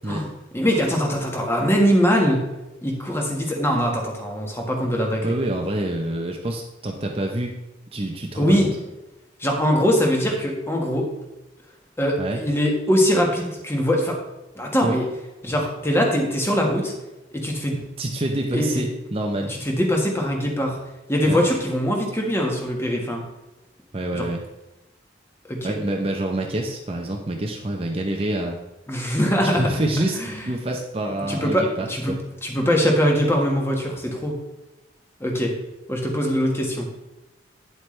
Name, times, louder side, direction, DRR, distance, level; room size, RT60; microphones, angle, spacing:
voice 1, 0.5-2.4 2.8-5.2 8.4-8.7 9.4-11.0 12.0-14.2 14.5-15.1 15.4-16.9 17.3-17.8 18.5-18.8 19.5-20.8 21.1-23.2 24.1-24.2 25.5-25.8 28.9-29.7 30.2-30.4 31.3-32.1 32.4-34.4 35.2-35.5 35.9-36.9, equal, 15° left, 1 dB, 1.5 m, -22 dB
voice 2, 5.2-7.5 7.9-8.8 12.2-12.4 14.8-15.0 17.7-19.5 21.3-21.4 23.9-24.4 25.6-28.6 29.4-32.2, right 1 dB, 30° right, 2 dB, 0.7 m, -27 dB
9.4 x 7.8 x 3.3 m, 1.0 s
head